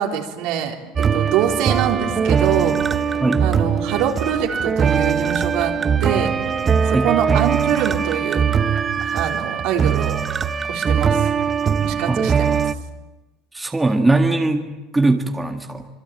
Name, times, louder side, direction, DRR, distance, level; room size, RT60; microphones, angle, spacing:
voice 1, 0.0-2.8 3.4-5.8 6.0-6.3 6.9-8.5 9.0-10.2 10.7-11.3 11.8-12.6, right 9 dB, 65° right, 2 dB, 4.0 m, -24 dB
sound 1, 1.0-12.7, right 7 dB, 25° right, 0.9 m, -21 dB
sound 2, 1.9-6.9, left 5 dB, 25° left, 5.2 m, -37 dB
voice 2, 13.5-15.9, right 2 dB, 10° right, 3 dB, 1.9 m, -20 dB
26.0 x 23.5 x 9.0 m, 1.1 s
supercardioid pair, 135°, 0 cm